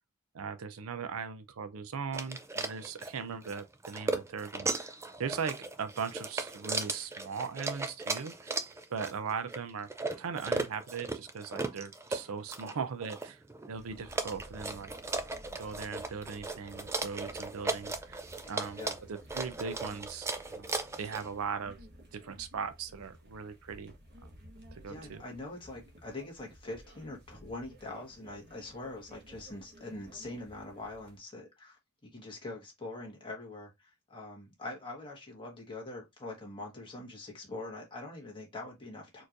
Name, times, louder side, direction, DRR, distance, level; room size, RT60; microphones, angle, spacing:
voice 1, 0.3-8.6 8.9-9.9 10.2-14.9 15.6-18.2 18.5-21.8 22.1-23.9 24.7-25.2, right 6 dB, 75° right, 0.5 m, -39 dB
sound 1, 2.1-21.3, right 3 dB, 15° right, 0.3 m, -37 dB
sound 2, 13.7-31.2, equal, 50° right, 1.1 m, -54 dB
voice 2, 18.4-19.0 24.8-39.2, left 2 dB, 25° left, 1.4 m, -43 dB
4.3 x 3.1 x 2.5 m
head